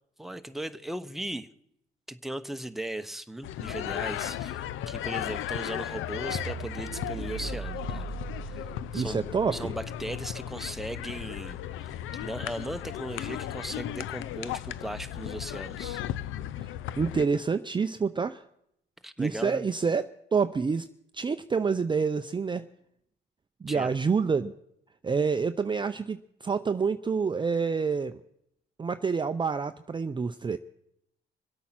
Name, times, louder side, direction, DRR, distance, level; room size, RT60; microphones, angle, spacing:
voice 1, 0.2-1.5 2.1-8.1 8.4-8.7 8.9-16.0 19.0-19.7 23.7-23.9, right 1 dB, ahead, 10 dB, 0.9 m, -37 dB
sound 1, 3.4-17.2, left 12 dB, 85° left, 0.6 m, -36 dB
sound 2, 6.3-12.6, right 8 dB, 55° right, 0.8 m, -42 dB
voice 2, 8.9-9.7 17.0-18.4 19.2-20.9 21.1-22.7 23.6-24.5 25.0-28.2 28.8-30.6, right 5 dB, 25° right, 11 dB, 0.5 m, -27 dB
25.5 x 8.5 x 5.9 m, 0.77 s
cardioid pair, 90°, 20 cm